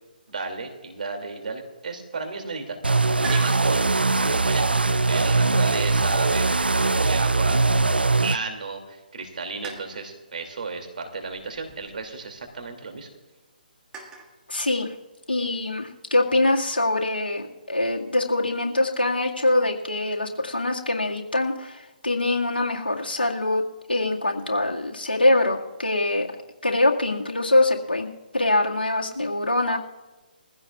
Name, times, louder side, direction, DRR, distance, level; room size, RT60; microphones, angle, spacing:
voice 1, 0.3-7.6 8.2-13.1, right 4 dB, 60° right, 4 dB, 2.6 m, -33 dB
sound 1, 2.8-8.4, right 3 dB, 85° right, 0.3 m, -21 dB
sound 2, 3.2-3.6 4.8-5.1 5.8-8.1 8.5-8.6 9.6-10.1 11.2-12.6 13.9-14.4, right 4 dB, 15° right, 2.2 m, -42 dB
voice 2, 14.5-14.9 15.3-23.6 23.9-26.3 26.6-28.1 28.3-29.8, left 2 dB, 80° left, -1 dB, 2.0 m, -23 dB
22.0 x 15.5 x 2.4 m, 1.2 s
figure-of-eight pair, 135°, 5 cm